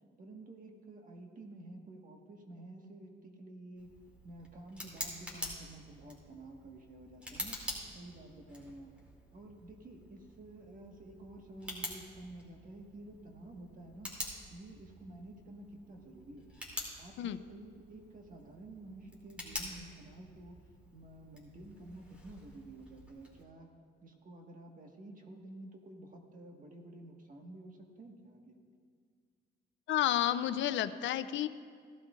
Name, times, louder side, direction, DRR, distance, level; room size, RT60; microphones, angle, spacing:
voice 1, 0.2-3.9 4.2-7.6 7.9-8.9 9.3-14.1 14.5-16.5 17.0-20.6 20.9-23.7 24.0-28.6, right 2 dB, 45° right, 2 dB, 1.6 m, -51 dB
Tick, 3.8-23.4, left 1 dB, 5° right, 2.8 m, -47 dB
voice 2, 29.9-31.5, left 12 dB, 70° left, 13 dB, 0.5 m, -31 dB
17.0 x 12.0 x 2.5 m, 2.1 s
cardioid pair, 90°, 20 cm